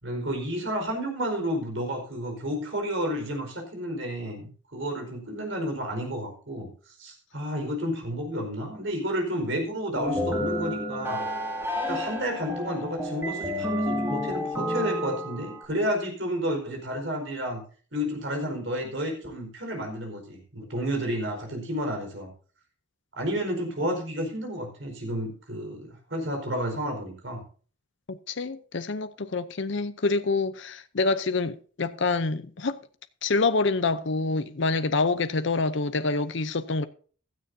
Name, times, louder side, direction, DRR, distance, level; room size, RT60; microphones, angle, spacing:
voice 1, 0.0-6.7 7.0-11.2 11.9-17.6 17.9-22.3 23.2-27.4, equal, 60° right, 4.8 m, -31 dB
sound 1, 10.0-15.7, left 1 dB, 10° right, 2.4 m, -30 dB
voice 2, 28.1-32.8 33.2-36.8, left 3 dB, 55° left, 0.7 m, -26 dB
16.0 x 13.0 x 2.7 m
head